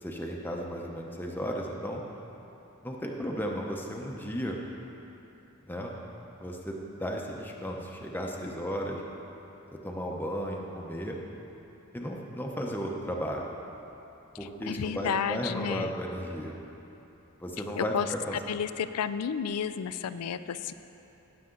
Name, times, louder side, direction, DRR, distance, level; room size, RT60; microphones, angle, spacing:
voice 1, 0.0-2.0 2.8-4.6 5.7-5.9 6.4-9.0 9.8-11.2 11.9-13.5 14.4-16.6 17.4-18.4, equal, 10° left, 0 dB, 0.8 m, -34 dB
voice 2, 14.6-15.9 17.8-18.1 18.3-20.7, left 7 dB, 90° left, 13 dB, 0.4 m, -31 dB
17.5 x 6.9 x 3.8 m, 3.0 s
head